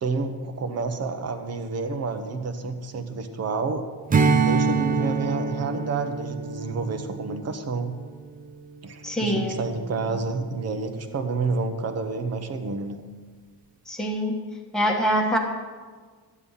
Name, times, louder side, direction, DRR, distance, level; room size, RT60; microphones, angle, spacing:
voice 1, 0.0-3.8 4.2-7.9 8.8-13.0, right 4 dB, 40° right, 7 dB, 1.1 m, -29 dB
Strum, 4.1-8.9, right 4 dB, 20° right, 0.5 m, -26 dB
voice 2, 9.0-9.6 13.9-14.4 14.7-15.4, equal, ahead, -2 dB, 1.3 m, -24 dB
13.0 x 9.8 x 5.6 m, 1.5 s
cardioid pair, 180°, 39 cm